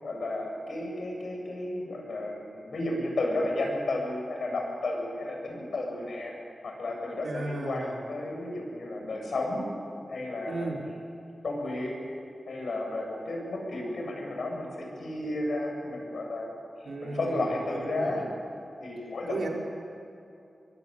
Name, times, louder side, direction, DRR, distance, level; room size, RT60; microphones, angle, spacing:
voice 1, 0.0-6.3 6.6-9.7 10.1-10.7 11.4-12.0 12.5-16.5 17.0-18.3 18.8-19.5, left 2 dB, 80° left, 0 dB, 7.5 m, -32 dB
voice 2, 7.2-8.0 10.5-10.9 16.8-17.5 17.9-18.2 19.3-19.5, right 2 dB, 80° right, -1 dB, 4.9 m, -34 dB
23.5 x 23.5 x 9.1 m, 2.6 s
cardioid pair, 50°, 0 cm